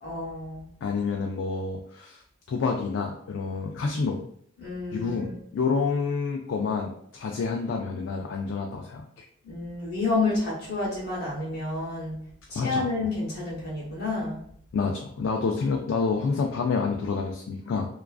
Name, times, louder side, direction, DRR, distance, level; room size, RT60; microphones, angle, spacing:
voice 1, 0.0-0.7 4.6-5.4 9.4-12.2 12.5-14.4, left 3 dB, 50° left, -6 dB, 0.8 m, -30 dB
voice 2, 0.8-2.2 2.5-4.2 4.9-5.3 5.5-9.2 12.5-12.9 14.7-17.9, left 4 dB, 75° left, 1 dB, 0.3 m, -28 dB
2.4 x 2.2 x 2.3 m, 0.66 s
head